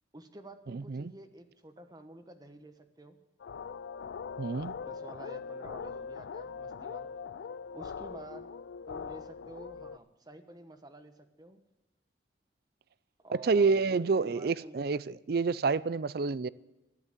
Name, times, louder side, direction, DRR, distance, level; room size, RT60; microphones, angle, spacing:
voice 1, 0.1-3.2 4.8-7.1 7.7-8.5 8.9-11.6 13.2-14.8, right 1 dB, 20° right, 1.2 m, -50 dB
voice 2, 0.7-1.1 4.4-4.7 13.4-16.5, right 4 dB, 55° right, 0.4 m, -28 dB
sound 1, 3.4-10.0, left 6 dB, 75° left, 0.4 m, -41 dB
13.5 x 11.0 x 7.4 m
head